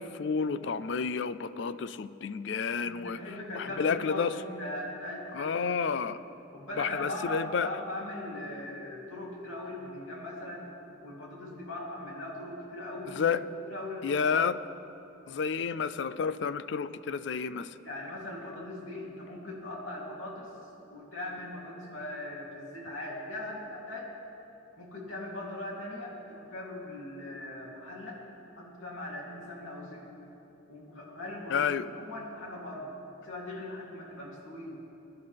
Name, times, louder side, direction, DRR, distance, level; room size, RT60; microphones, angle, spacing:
voice 1, 0.0-3.2 3.5-4.3 5.3-6.2 6.8-7.7 13.1-13.4 14.0-14.6 15.3-17.8 31.5-31.9, left 6 dB, 60° left, 14 dB, 0.4 m, -30 dB
voice 2, 2.8-6.0 6.5-10.7 11.0-14.4 17.8-20.5 20.9-24.1 24.8-28.2 28.6-30.1 30.7-32.9 33.2-34.8, left 1 dB, 80° left, -3 dB, 2.9 m, -40 dB
22.0 x 11.5 x 3.4 m, 2.8 s
head